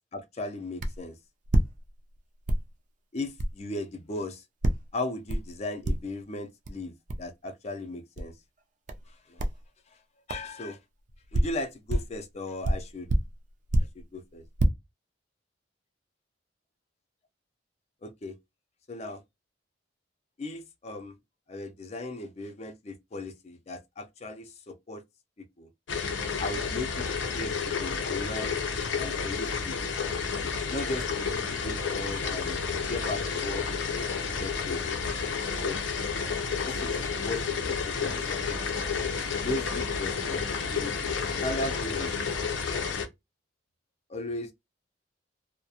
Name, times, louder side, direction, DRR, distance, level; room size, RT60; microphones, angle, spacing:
voice 1, 0.1-1.1 3.1-4.4 4.9-6.9 7.2-8.3 9.3-9.4 10.3-10.8 11.3-13.1 14.1-14.4 18.0-18.3 18.9-19.2 20.4-21.1 21.5-25.0 25.6-25.7 26.4-27.0 27.3-28.5 29.0-29.7 30.5-32.6 32.9-33.7 34.4-34.8 35.6-35.8 36.7-36.9 37.2-38.2 39.4-40.9 41.2-42.1 44.1-44.5, left 2 dB, 35° left, 0.4 m, -37 dB
sound 1, 0.8-1.0 1.4-2.2 2.5-2.7 3.4-3.6 4.6-4.9 5.3-5.5 5.8-6.2 6.7-6.8 7.1-7.3 8.2-8.3 8.9-9.1 9.4-9.6 10.3-10.5 11.1-12.2 12.6-14.0 14.4-14.7, right 1 dB, 45° right, 0.4 m, -27 dB
sound 2, 25.9-43.1, left 5 dB, 90° left, 0.5 m, -31 dB
2.3 x 2.1 x 2.7 m
head